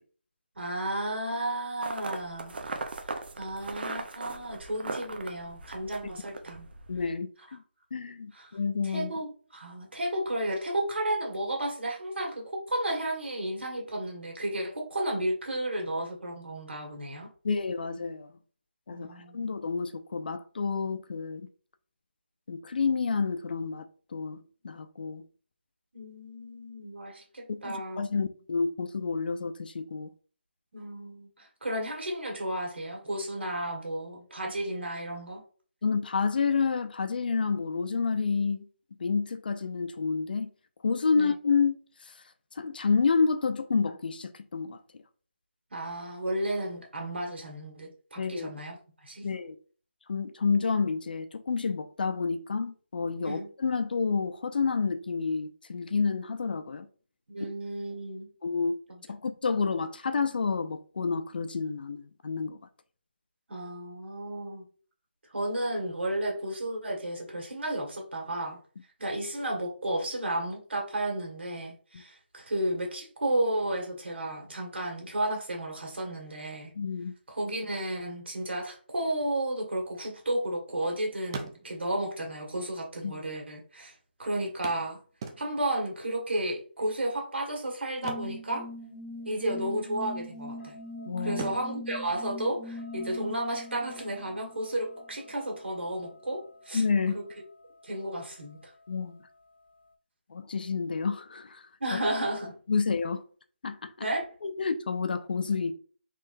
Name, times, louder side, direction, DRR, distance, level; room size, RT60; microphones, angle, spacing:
voice 1, 0.6-2.5 3.4-6.7 8.3-8.6 8.8-9.3 9.5-17.3 18.9-19.4 25.9-28.0 30.7-35.4 41.1-41.3 45.7-49.3 53.2-53.5 57.3-58.3 58.9-59.0 63.5-64.6 65.3-68.6 69.0-76.7 77.3-83.9 84.2-85.0 85.4-88.7 89.3-90.8 91.2-96.8 97.8-98.6 101.8-102.6 104.0-104.2, right 1 dB, 75° right, 1.7 m, -33 dB
sound 1, 1.8-7.1, right 3 dB, 60° right, 0.6 m, -39 dB
voice 2, 6.9-7.6 7.9-9.1 17.4-18.3 18.9-21.5 22.5-23.9 24.1-25.2 27.5-30.1 35.8-38.7 39.0-40.5 40.8-42.2 42.6-44.8 48.2-48.5 49.2-49.6 50.1-56.9 57.4-57.5 58.4-58.8 59.1-62.6 76.8-77.1 83.0-83.3 91.1-91.4 96.7-97.1 98.9-99.2 100.3-101.6 101.9-102.0 102.7-103.2 103.6-103.9 104.4-105.7, left 5 dB, 55° left, 0.5 m, -29 dB
sound 2, 79.7-80.9 81.2-82.1 83.0-83.1 83.3-83.4 84.6-85.8 87.9-89.2 89.4-89.7 90.2-90.8 91.3-93.1 95.0-95.1 95.6-95.7, right 4 dB, 25° right, 0.4 m, -42 dB
sound 3, 88.0-95.0, left 1 dB, 80° left, 1.1 m, -42 dB
3.8 x 3.2 x 2.6 m
figure-of-eight pair, 165°, 6 cm